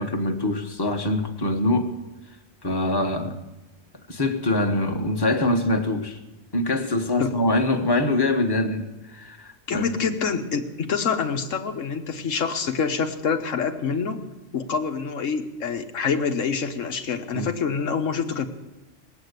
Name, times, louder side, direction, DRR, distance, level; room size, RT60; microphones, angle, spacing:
voice 1, 0.0-1.9 2.6-3.4 4.1-6.2 6.5-9.9 17.3-17.5, left 2 dB, 20° left, 4 dB, 1.1 m, -24 dB
voice 2, 9.7-14.2 14.5-18.5, left 5 dB, 85° left, 6 dB, 1.4 m, -26 dB
18.5 x 8.3 x 8.1 m, 1.1 s
omnidirectional pair, 1.3 m